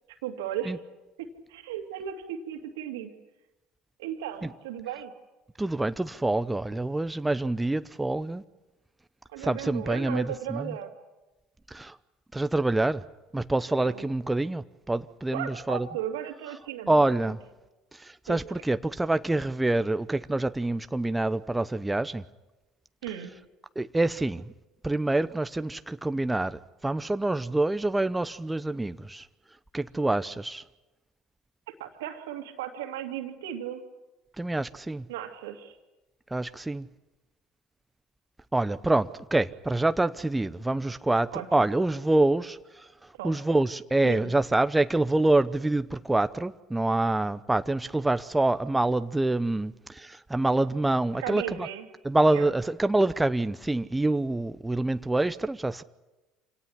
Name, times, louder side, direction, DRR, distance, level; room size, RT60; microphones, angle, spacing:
voice 1, 0.2-0.8 1.2-3.1 4.0-5.1 9.3-10.9 13.8-14.1 15.3-17.3 18.3-18.4 23.0-23.3 31.7-33.8 35.1-35.8 41.3-41.7 43.1-43.4 44.0-44.3 51.2-51.9 52.3-52.5, right 10 dB, 80° right, 6 dB, 2.4 m, -36 dB
voice 2, 5.6-8.4 9.4-10.7 11.7-12.0 12.3-13.0 13.3-15.9 16.9-17.4 17.9-22.2 23.8-24.5 24.8-29.2 29.7-30.6 34.4-35.0 36.3-36.9 38.5-42.9 43.2-51.7 52.0-55.8, right 2 dB, 10° right, 12 dB, 0.7 m, -26 dB
26.0 x 18.0 x 10.0 m, 1.1 s
hypercardioid pair, 70°, 0 cm